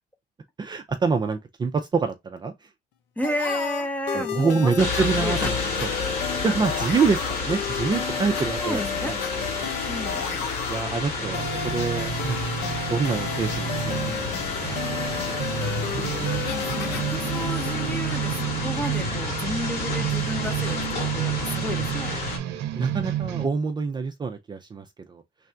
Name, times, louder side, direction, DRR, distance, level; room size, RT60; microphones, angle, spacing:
voice 1, 0.6-2.7 4.1-5.6 6.1-9.7 10.0-10.1 10.7-12.4 12.9-14.8 15.6-15.7 16.0-16.4 22.8-25.2, right 4 dB, 25° right, 0.5 m, -27 dB
sound 1, 3.2-18.7, left 7 dB, 90° left, 0.7 m, -33 dB
voice 2, 3.2-5.5 8.6-9.1 9.9-10.5 16.5-20.9 21.1-22.1, equal, 10° left, 0.8 m, -32 dB
sound 2, 4.8-22.4, left 4 dB, 65° left, 2.0 m, -30 dB
sound 3, 11.2-23.5, right 10 dB, 85° right, 0.6 m, -30 dB
3.3 x 2.4 x 4.4 m
cardioid pair, 110°, 17 cm